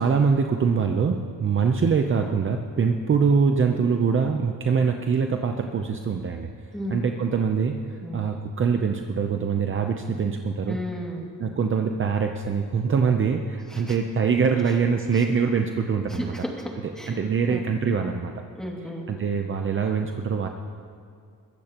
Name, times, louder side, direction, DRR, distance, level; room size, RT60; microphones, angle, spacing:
voice 1, 0.0-6.5 6.9-10.8 11.4-16.3 17.1-18.3 19.1-20.5, right 5 dB, 40° right, 4 dB, 0.7 m, -24 dB
voice 2, 10.6-11.3 13.7-14.0 14.7-14.8 15.1-15.2 16.1-16.7 17.0-17.2 17.5-17.6 18.6-19.0, equal, ahead, -2 dB, 2.4 m, -33 dB
22.0 x 15.5 x 3.0 m, 2.4 s
cardioid pair, 130°, 33 cm